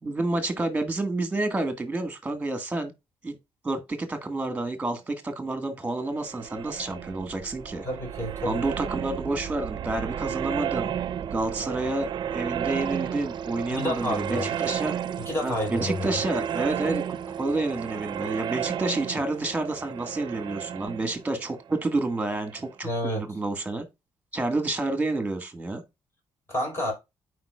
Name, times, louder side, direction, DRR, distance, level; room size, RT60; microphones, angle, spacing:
voice 1, 0.0-2.9 3.2-3.4 3.6-7.9 8.4-10.9 11.3-15.0 15.4-23.8 24.3-25.8, right 2 dB, 15° right, 1.8 m, -29 dB
sound 1, 6.1-22.7, right 9 dB, 55° right, 0.6 m, -33 dB
voice 2, 7.8-8.6 13.7-14.5 15.2-16.1 22.8-23.3 26.5-26.9, left 1 dB, 25° left, 4.8 m, -29 dB
11.0 x 5.0 x 2.4 m
cardioid pair, 135°, 9 cm